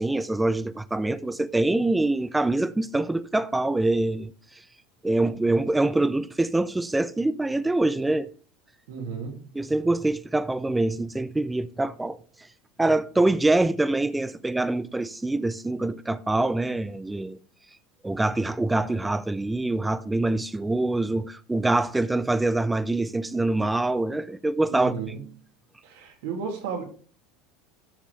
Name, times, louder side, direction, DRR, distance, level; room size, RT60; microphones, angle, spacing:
voice 1, 0.0-4.3 5.0-8.3 9.5-12.2 12.8-17.4 18.0-24.9, right 2 dB, 10° right, 0.5 m, -25 dB
voice 2, 8.9-9.4 24.7-25.2 25.8-26.8, right 5 dB, 80° right, 2.7 m, -33 dB
11.5 x 6.5 x 3.3 m
supercardioid pair, 125°, 0 cm